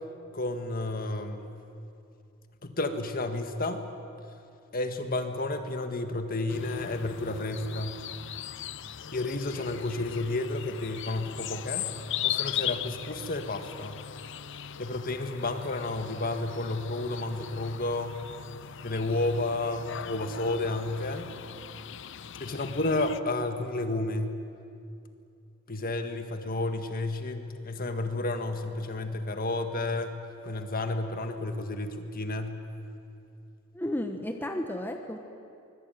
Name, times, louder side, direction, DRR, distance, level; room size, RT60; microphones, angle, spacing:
voice 1, 0.3-1.5 2.6-3.8 4.7-8.0 9.1-11.9 12.2-14.0 14.8-18.2 18.8-21.3 22.3-24.3 25.7-32.6, left 2 dB, 45° left, 7 dB, 1.8 m, -31 dB
sound 1, 6.5-23.2, left 10 dB, 60° left, 0.7 m, -39 dB
voice 2, 33.7-35.2, left 1 dB, 10° left, 4 dB, 1.2 m, -33 dB
25.0 x 21.5 x 9.2 m, 2.5 s
head